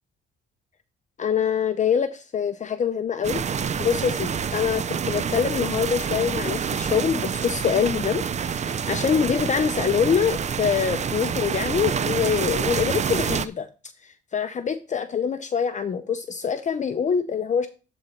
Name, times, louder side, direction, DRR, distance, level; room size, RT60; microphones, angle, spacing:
voice 1, 1.2-3.4 3.8-8.2 8.5-13.7 14.0-17.7, left 7 dB, 40° left, 10 dB, 0.6 m, -25 dB
sound 1, 3.2-13.5, right 7 dB, 35° right, 0.5 m, -27 dB
11.0 x 3.9 x 4.4 m, 0.34 s
cardioid pair, 90°, 20 cm